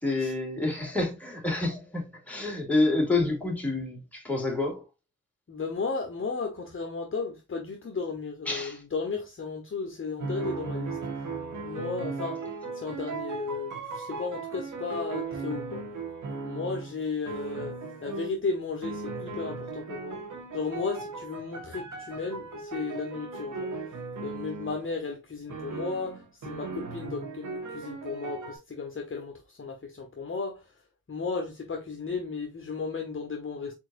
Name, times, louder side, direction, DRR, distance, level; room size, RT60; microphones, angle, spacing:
voice 1, 0.0-4.8 8.5-8.8, left 2 dB, 5° left, 2.7 m, -28 dB
voice 2, 5.5-11.0 11.6-12.4 12.7-15.9 16.4-20.2 20.5-23.8 24.2-30.7 31.1-33.7, left 4 dB, 35° left, 1.0 m, -34 dB
sound 1, 10.2-17.0 17.3-18.4 18.8-24.9 25.5-28.6, right 4 dB, 60° right, 1.6 m, -37 dB
4.5 x 4.5 x 2.5 m
cardioid pair, 70°, 33 cm